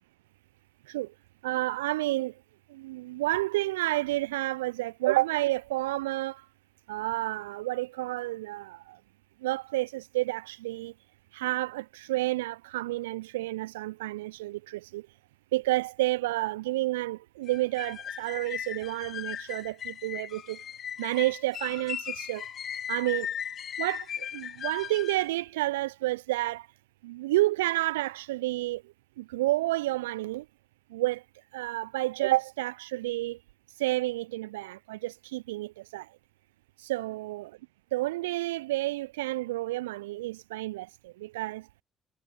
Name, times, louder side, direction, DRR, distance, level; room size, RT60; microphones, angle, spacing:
voice 1, 1.4-2.4 2.7-6.5 6.9-9.0 9.4-10.9 11.3-15.1 15.5-20.6 21.0-22.5 22.9-23.3 23.8-26.7 27.0-30.5 30.9-31.2 31.5-33.4 33.8-36.2 36.8-37.5 37.9-41.7, right 18 dB, 75° right, 0.7 m, -30 dB
sound 1, 17.5-25.3, left 9 dB, 55° left, 1.1 m, -37 dB
figure-of-eight pair, 40°, 0 cm